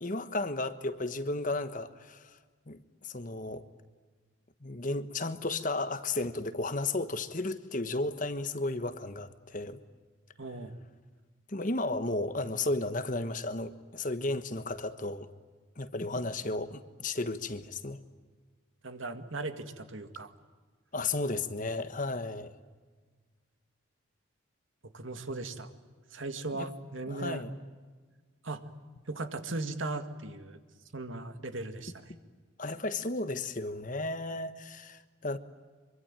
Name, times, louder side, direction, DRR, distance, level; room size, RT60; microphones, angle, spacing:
voice 1, 0.0-2.4 2.7-3.6 4.6-9.8 11.5-15.3 15.8-18.0 20.9-22.5 26.5-26.7 27.0-27.5 32.6-35.4, left 2 dB, 40° left, 1.3 m, -34 dB
voice 2, 10.4-10.7 18.8-20.3 24.9-25.7 26.1-27.4 28.4-28.6 29.1-30.6 30.9-31.9, right 2 dB, 70° right, 2.1 m, -37 dB
25.5 x 24.5 x 8.9 m
head